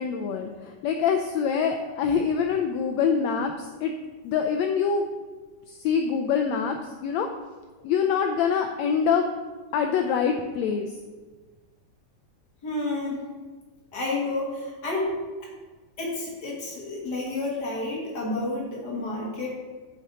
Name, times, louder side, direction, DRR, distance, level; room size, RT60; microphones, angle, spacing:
voice 1, 0.0-3.9 4.2-5.0 5.7-7.3 7.8-9.3 9.7-11.0, left 6 dB, 90° left, 5 dB, 1.5 m, -25 dB
voice 2, 12.6-13.2 13.9-15.1 15.4-15.5 16.0-19.5, left 2 dB, 35° left, -4 dB, 2.2 m, -30 dB
8.2 x 7.9 x 4.2 m, 1.3 s
omnidirectional pair, 3.8 m